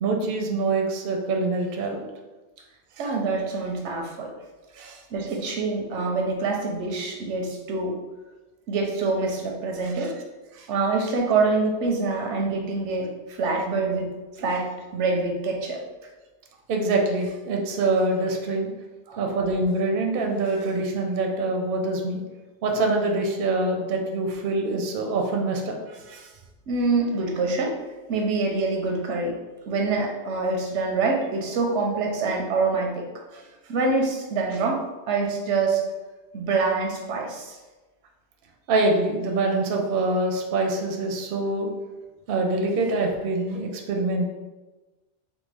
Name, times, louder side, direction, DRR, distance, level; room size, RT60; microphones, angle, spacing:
voice 1, 0.0-2.1 4.8-5.0 10.0-10.1 10.5-10.7 16.7-18.7 19.2-22.2 22.6-26.3 38.7-41.7 42.3-44.3, right 2 dB, 60° right, 2 dB, 0.7 m, -25 dB
voice 2, 3.0-4.3 5.1-8.0 8.7-10.2 10.7-14.1 14.4-15.8 19.1-19.3 26.7-27.8 28.1-29.4 29.7-33.0 33.7-35.8 36.3-37.6, right 3 dB, 85° right, 1 dB, 0.9 m, -25 dB
3.5 x 2.1 x 3.2 m, 1.2 s
omnidirectional pair, 1.2 m